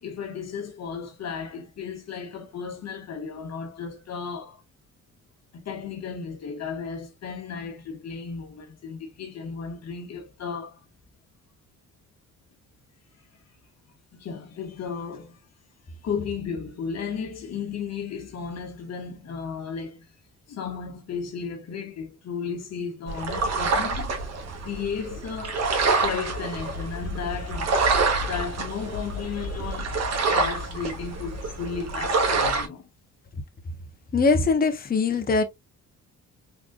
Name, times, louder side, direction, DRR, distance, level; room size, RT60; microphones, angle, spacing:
voice 1, 0.0-4.6 5.5-10.8 14.1-15.4 15.9-20.1 20.5-24.2 24.6-25.7 26.0-27.8 28.3-32.9, left 6 dB, 60° left, 1.4 m, -34 dB
sound 1, 23.1-32.7, right 3 dB, 60° right, 1.3 m, -27 dB
voice 2, 34.1-35.4, left 4 dB, 30° left, 0.9 m, -21 dB
3.8 x 3.4 x 2.3 m
cardioid pair, 90°, 30 cm